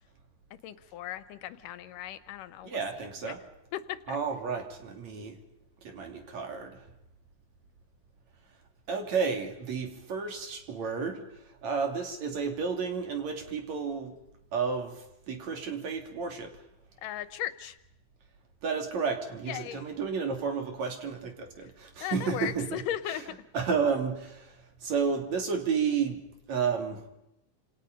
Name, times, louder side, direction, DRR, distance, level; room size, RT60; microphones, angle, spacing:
voice 1, 0.6-2.8 3.2-3.3 3.7-4.2 17.0-17.8 19.5-19.9 22.0-23.2, left 12 dB, 85° left, 13 dB, 2.7 m, -37 dB
voice 2, 2.6-3.4 4.1-5.4 5.8-6.8 8.9-11.3 11.6-14.1 14.5-15.0 15.3-16.5 18.6-22.8 23.1-23.2 23.5-24.5 24.8-26.2 26.5-27.0, right 5 dB, 60° right, 4 dB, 4.2 m, -31 dB
29.0 x 28.0 x 5.4 m, 0.84 s
omnidirectional pair, 3.7 m